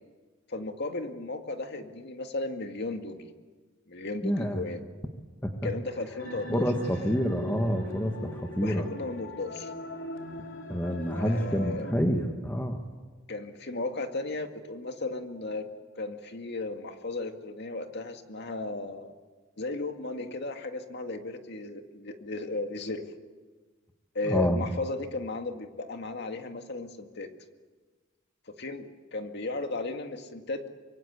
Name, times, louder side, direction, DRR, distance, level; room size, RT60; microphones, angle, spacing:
voice 1, 0.5-3.3 3.9-4.8 5.6-6.6 8.6-9.7 11.2-11.9 13.3-15.7 16.0-19.1 19.6-23.0 24.1-27.3 28.6-30.7, left 2 dB, 55° left, 6 dB, 2.1 m, -35 dB
voice 2, 4.2-4.6 5.4-5.7 6.5-8.9 10.7-12.8 24.3-24.6, equal, 10° left, 3 dB, 1.6 m, -28 dB
sound 1, 6.2-11.9, left 1 dB, 75° left, 2.7 m, -41 dB
25.0 x 23.0 x 8.2 m, 1.4 s
head